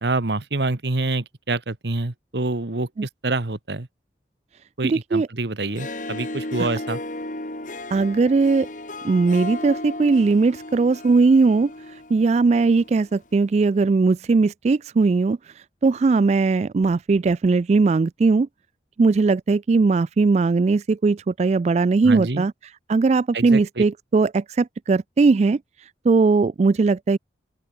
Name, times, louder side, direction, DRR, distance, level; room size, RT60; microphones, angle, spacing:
voice 1, 0.0-3.9 4.8-7.0 22.0-22.5 23.3-23.8, right 2 dB, 75° right, 1.3 m, -26 dB
voice 2, 4.8-5.3 6.6-6.7 7.9-8.7 9.0-15.4 15.8-18.5 19.0-22.5 22.9-27.2, right 4 dB, 40° right, 0.3 m, -19 dB
Harp, 5.6-13.1, left 2 dB, 45° left, 2.8 m, -35 dB
open air
head